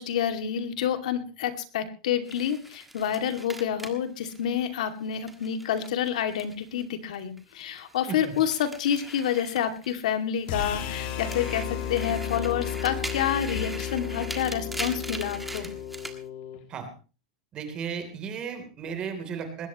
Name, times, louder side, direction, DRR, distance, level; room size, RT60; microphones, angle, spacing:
voice 1, 0.0-15.7, left 9 dB, 75° left, 8 dB, 2.4 m, -28 dB
sound 1, 2.3-6.8 7.1-10.1 10.5-16.2, right 1 dB, 5° right, 1.5 m, -41 dB
sound 2, 10.5-16.6, left 9 dB, 40° left, 2.6 m, -33 dB
voice 2, 17.5-19.7, right 6 dB, 20° right, 6 dB, 3.3 m, -35 dB
20.5 x 17.5 x 3.1 m, 0.34 s
supercardioid pair, 170°, 4 cm